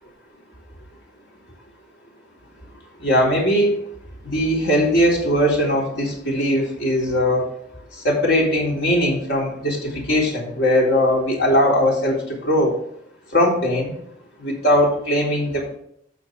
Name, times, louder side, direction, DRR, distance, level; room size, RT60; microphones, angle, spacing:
voice 1, 3.0-3.8 4.2-7.5 8.0-12.8 13.3-14.0 14.4-15.7, equal, 65° left, -2 dB, 3.7 m, -20 dB
12.5 x 6.4 x 3.4 m, 0.70 s
head